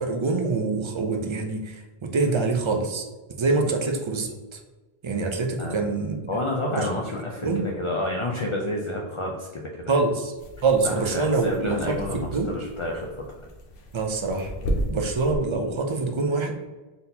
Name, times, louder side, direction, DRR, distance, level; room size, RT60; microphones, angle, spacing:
voice 1, 0.0-3.0 3.4-4.6 5.0-6.2 6.7-6.9 7.4-7.6 9.9-10.3 10.6-12.0 12.3-12.5 13.9-14.5 14.9-16.5, right 3 dB, 40° right, 3 dB, 0.4 m, -25 dB
voice 2, 6.3-10.0 10.8-13.2, left 1 dB, 45° left, -1 dB, 0.4 m, -30 dB
sound 1, 10.4-15.4, equal, 70° left, 0.9 m, -34 dB
4.0 x 4.0 x 2.7 m, 1.2 s
omnidirectional pair, 1.0 m